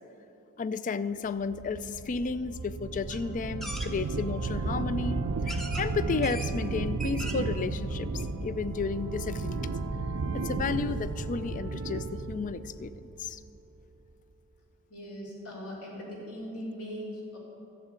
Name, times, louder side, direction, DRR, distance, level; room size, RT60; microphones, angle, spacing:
voice 1, 0.6-8.1 8.4-9.7 10.3-12.9 13.2-13.4, left 4 dB, 35° left, 15 dB, 0.3 m, -33 dB
sound 1, 1.5-13.6, right 3 dB, 75° right, 0.6 m, -33 dB
sound 2, 3.1-3.2 3.6-3.9 4.8-4.9 5.5-5.9 6.2-6.5 6.9-7.5 7.9-8.0 8.2-8.3, right 1 dB, ahead, 0.7 m, -39 dB
voice 2, 14.9-17.4, equal, 80° left, -4 dB, 3.6 m, -40 dB
12.5 x 7.5 x 8.1 m, 2.9 s
head